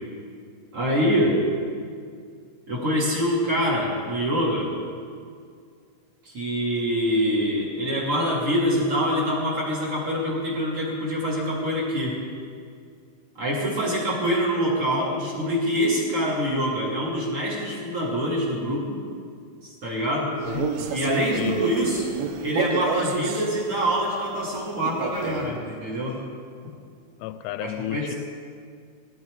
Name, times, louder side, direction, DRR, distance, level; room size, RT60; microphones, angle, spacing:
voice 1, 0.7-1.4 2.7-4.7 6.2-12.2 13.3-19.0 19.6-20.3 20.9-22.1 22.4-26.2 27.6-28.1, equal, 35° right, -5 dB, 2.7 m, -25 dB
Male speech man speaking, 20.4-23.5 24.9-25.5, right 6 dB, 90° right, 3.5 m, -29 dB
voice 2, 20.5-20.9 21.4-21.6 27.2-28.1, left 13 dB, 85° left, 12 dB, 3.0 m, -31 dB
19.5 x 13.5 x 4.8 m, 2.2 s
omnidirectional pair, 5.5 m